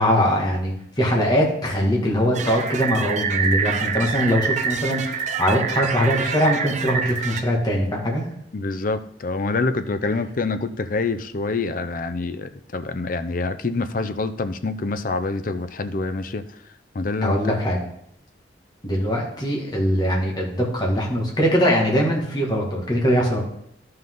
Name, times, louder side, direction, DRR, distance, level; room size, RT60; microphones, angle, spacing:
voice 1, 0.0-8.3 17.2-17.8 18.8-23.4, equal, 25° left, -2 dB, 2.0 m, -21 dB
sound 1, 2.3-7.4, right 6 dB, 40° right, 0.5 m, -26 dB
voice 2, 8.5-16.4 16.9-17.6, left 3 dB, 50° left, 10 dB, 0.6 m, -26 dB
12.0 x 5.5 x 3.9 m, 0.71 s
head